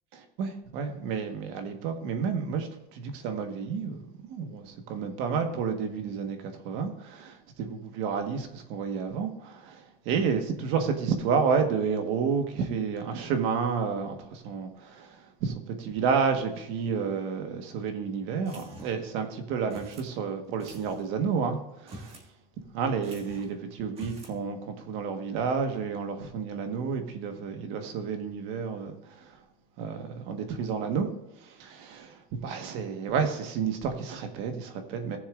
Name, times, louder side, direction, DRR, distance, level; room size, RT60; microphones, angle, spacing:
voice 1, 0.1-4.0 4.3-22.2 22.7-29.4 29.8-31.1 31.4-35.2, right 6 dB, 65° right, 5 dB, 1.5 m, -30 dB
sound 1, 18.5-19.1 19.7-20.1 20.6-21.1 21.8-22.3 22.6-22.7 23.0-23.5 23.9-24.4, right 1 dB, 30° right, 1.8 m, -46 dB
18.0 x 7.1 x 2.5 m, 0.87 s
cardioid pair, 150°, 21 cm